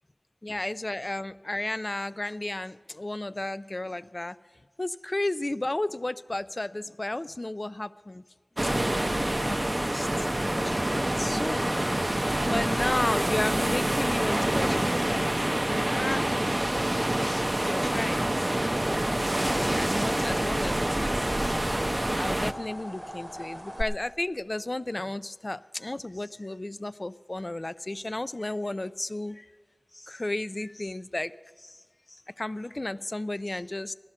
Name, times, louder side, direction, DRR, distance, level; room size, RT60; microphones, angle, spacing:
voice 1, 0.4-4.4 4.8-8.2 9.1-9.6 9.8-11.7 12.4-15.4 15.8-16.5 17.2-18.2 19.5-21.3 22.2-29.5 29.9-31.8 32.1-33.9, left 2 dB, 45° left, 15 dB, 0.4 m, -33 dB
sound 1, 8.6-22.5, right 1 dB, 30° right, 0.5 m, -27 dB
sound 2, 10.6-23.8, equal, 10° right, 0.9 m, -40 dB
15.5 x 12.0 x 5.7 m, 1.5 s
wide cardioid pair, 50°, 0 cm